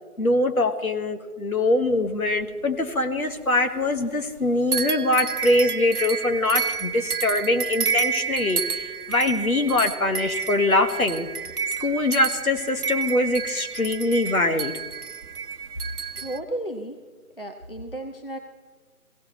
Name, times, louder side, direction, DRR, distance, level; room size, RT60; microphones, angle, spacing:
voice 1, 0.2-11.3 11.8-14.7, left 2 dB, 70° left, 6 dB, 1.7 m, -23 dB
sound 1, 1.9-3.5 3.8-4.4 4.7-16.4, right 6 dB, 75° right, 0.9 m, -30 dB
voice 2, 16.2-17.0 17.4-18.4, right 1 dB, 40° left, 4 dB, 0.8 m, -33 dB
19.5 x 17.0 x 3.1 m, 1.4 s
figure-of-eight pair, 180°, 45 cm